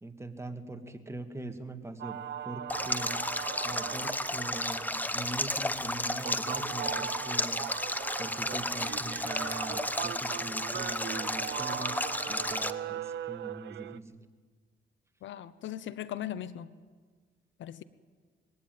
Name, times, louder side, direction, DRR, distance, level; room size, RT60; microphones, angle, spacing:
voice 1, 0.0-2.2 2.4-3.2 3.6-7.6 8.2-14.2, right 2 dB, 15° right, 6 dB, 1.9 m, -42 dB
sound 1, 2.0-14.0, right 11 dB, 65° right, 0.7 m, -39 dB
Stream, 2.7-12.7, left 1 dB, 10° left, 0.9 m, -33 dB
voice 2, 15.2-16.7 17.6-17.8, left 11 dB, 70° left, 16 dB, 0.9 m, -38 dB
21.5 x 16.0 x 9.3 m, 1.5 s
cardioid pair, 90°, 20 cm